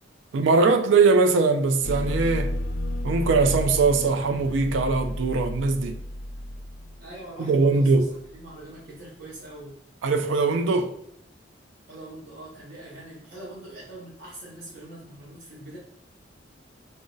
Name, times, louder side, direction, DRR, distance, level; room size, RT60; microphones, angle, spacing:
voice 1, 0.3-2.5 3.0-6.0 7.4-8.1 10.0-10.9, right 4 dB, 85° right, 0.4 m, -21 dB
sound 1, 1.8-7.1, left 1 dB, 80° left, 0.4 m, -31 dB
voice 2, 7.0-9.8 11.9-15.8, right 1 dB, 50° right, 0.8 m, -43 dB
2.6 x 2.0 x 3.6 m
head